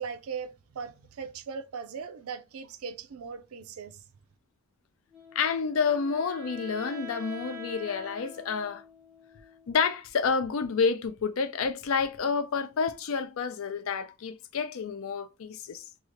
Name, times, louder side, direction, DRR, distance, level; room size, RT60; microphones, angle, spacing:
voice 1, 0.0-4.0, right 6 dB, 90° right, 0.4 m, -39 dB
Wind instrument woodwind instrument, 5.1-10.2, left 1 dB, 5° right, 0.7 m, -46 dB
voice 2, 5.3-8.8 9.7-15.9, left 5 dB, 75° left, 0.4 m, -29 dB
2.8 x 2.4 x 3.1 m
head